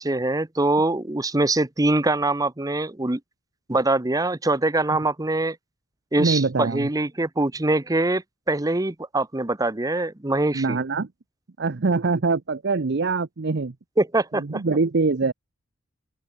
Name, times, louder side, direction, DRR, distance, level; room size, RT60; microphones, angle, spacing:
voice 1, 0.0-3.2 3.7-5.6 6.1-10.8 14.0-14.6, right 2 dB, 15° right, 0.9 m, -23 dB
voice 2, 6.2-6.9 10.5-11.1 11.6-13.7 14.3-15.3, right 4 dB, 55° right, 0.7 m, -23 dB
open air
head